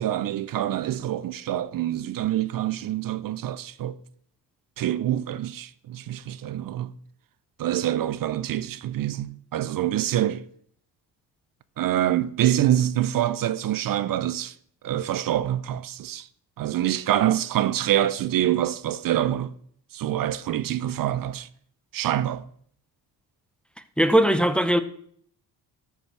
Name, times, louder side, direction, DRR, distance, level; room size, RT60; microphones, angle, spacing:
voice 1, 0.0-4.0 4.8-6.9 7.6-10.4 11.8-14.5 14.8-16.3 16.6-19.5 19.9-21.5 21.9-22.4, right 12 dB, 60° right, 0.6 m, -26 dB
voice 2, 24.0-24.8, right 1 dB, 5° left, 0.7 m, -19 dB
13.0 x 5.8 x 6.0 m
cardioid pair, 100°, 38 cm